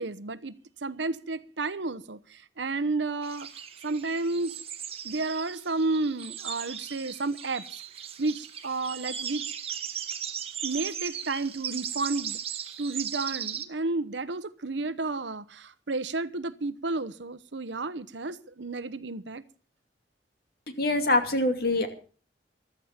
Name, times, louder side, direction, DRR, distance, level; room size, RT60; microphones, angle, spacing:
voice 1, 0.0-3.5 3.8-4.5 5.0-7.6 8.2-9.5 10.6-12.4 12.8-19.4, right 3 dB, 90° right, 1.0 m, -31 dB
sound 1, 3.2-13.6, right 8 dB, 35° right, 1.4 m, -37 dB
voice 2, 20.8-21.9, left 2 dB, 55° left, 2.6 m, -24 dB
14.5 x 13.5 x 5.9 m
head